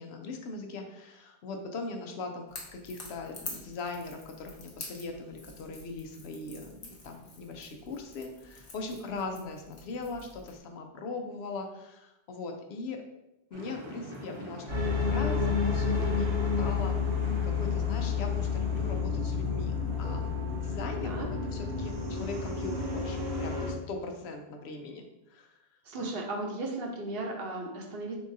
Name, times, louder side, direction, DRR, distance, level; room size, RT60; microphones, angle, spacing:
voice 1, 0.0-13.0 13.5-17.0 17.4-19.7 20.0-21.2 21.5-25.6 25.9-26.1, left 3 dB, 90° left, 4 dB, 0.9 m, -40 dB
Crackle / Crack, 2.5-10.6, left 3 dB, 65° left, 1.0 m, -47 dB
sound 1, 13.5-19.0, equal, 35° right, 0.6 m, -44 dB
sound 2, 14.7-23.7, left 5 dB, 85° right, 1.2 m, -30 dB
voice 2, 25.9-28.2, right 2 dB, 65° right, 1 dB, 0.9 m, -35 dB
3.9 x 3.7 x 2.6 m, 0.93 s
omnidirectional pair, 1.0 m